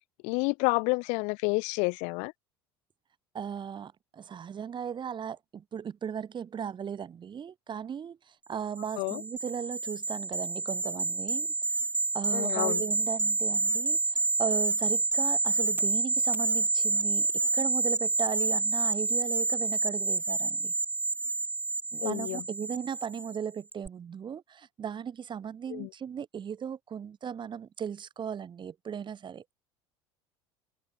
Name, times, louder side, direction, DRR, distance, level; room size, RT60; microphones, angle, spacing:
voice 1, 0.2-2.3 9.0-9.2 12.3-12.8 22.0-22.4 25.7-25.9, left 32 dB, 65° left, 2.5 m, -29 dB
voice 2, 3.3-11.8 12.1-17.3 17.5-20.7 21.9-29.4, right 8 dB, 35° right, 3.7 m, -37 dB
sound 1, 8.8-23.4 23.7-23.9, right 3 dB, 15° right, 1.0 m, -28 dB
hypercardioid pair, 75°, 13 cm